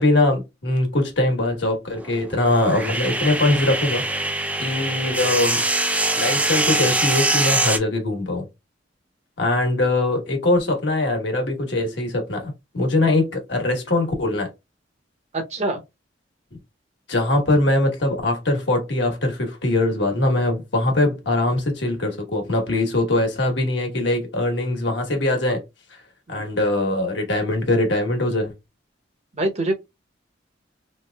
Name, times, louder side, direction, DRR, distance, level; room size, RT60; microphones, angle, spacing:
voice 1, 0.0-4.0 4.6-5.6 6.1-8.4 9.4-14.5 17.1-25.6 26.3-28.5, left 2 dB, 65° left, 1.3 m, -22 dB
Circular saw crosscutting, 2.0-7.8, right 2 dB, 10° right, 0.5 m, -23 dB
voice 2, 15.5-15.8 26.3-26.5 29.4-29.7, right 1 dB, 35° right, 0.8 m, -24 dB
3.5 x 3.0 x 2.2 m
head